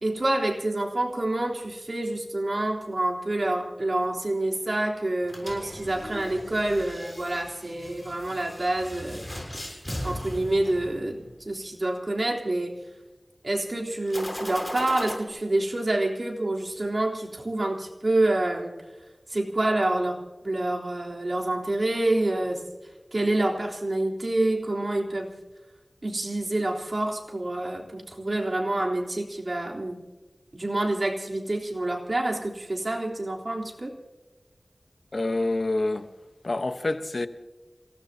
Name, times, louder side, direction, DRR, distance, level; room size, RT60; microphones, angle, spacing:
voice 1, 0.0-9.3 10.0-12.8 13.4-18.8 19.3-22.6 23.1-25.3 26.0-30.0 30.5-34.0, right 1 dB, 55° right, 3.6 m, -27 dB
sound 1, 5.2-11.4 14.1-15.2, equal, 10° left, 6.8 m, -38 dB
voice 2, 35.1-36.1 36.4-37.3, left 2 dB, 65° left, 1.0 m, -27 dB
27.5 x 18.0 x 2.8 m
wide cardioid pair, 50°, 0 cm